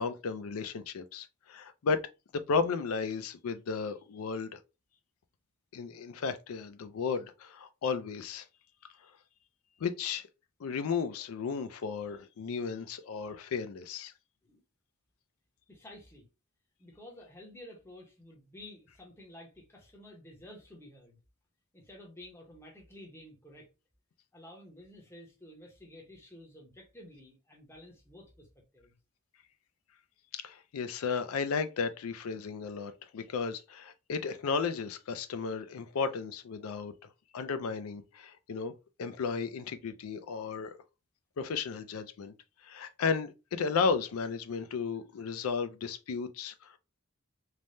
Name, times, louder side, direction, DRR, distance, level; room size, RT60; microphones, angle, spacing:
voice 1, 0.0-2.0 2.3-4.6 5.7-8.4 9.8-10.3 10.6-14.1 30.3-36.9 37.3-38.7 39.0-40.8 41.4-42.3 42.6-46.8, left 5 dB, 85° left, 0.4 m, -34 dB
voice 2, 15.7-16.3 16.8-21.2 21.7-23.7 24.3-28.5 28.7-28.9, left 1 dB, 10° left, 0.7 m, -51 dB
3.2 x 2.1 x 2.6 m
head